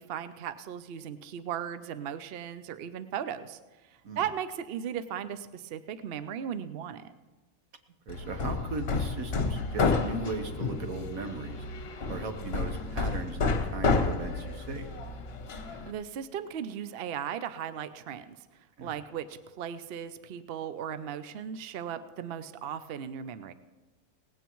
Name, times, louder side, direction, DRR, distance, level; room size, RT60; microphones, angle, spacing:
voice 1, 0.0-3.6 3.9-7.1 15.6-18.4 18.8-23.5, right 9 dB, 55° right, 12 dB, 0.7 m, -37 dB
Hammer, 8.1-15.9, left 4 dB, 50° left, 1.1 m, -31 dB
voice 2, 8.1-11.6 12.1-14.9 18.8-18.9, right 3 dB, 80° right, 6 dB, 1.6 m, -37 dB
18.5 x 16.0 x 3.1 m, 1.2 s
omnidirectional pair, 1.4 m